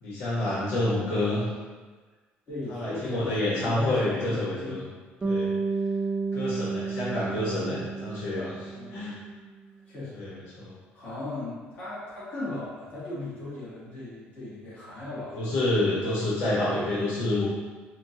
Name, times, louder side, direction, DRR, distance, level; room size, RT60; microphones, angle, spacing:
voice 1, 0.0-1.4 2.7-4.8 5.2-5.5 6.3-9.1 10.1-10.7 15.4-17.4, left 1 dB, 85° left, -8 dB, 1.1 m, -28 dB
voice 2, 2.5-4.8 5.2-5.4 8.7-9.2 9.8-10.3 10.9-15.4, left 2 dB, 40° left, -10 dB, 1.5 m, -37 dB
Bass guitar, 5.2-9.5, right 4 dB, 15° right, 0.5 m, -31 dB
4.4 x 2.2 x 2.7 m, 1.4 s
cardioid pair, 150°, 4 cm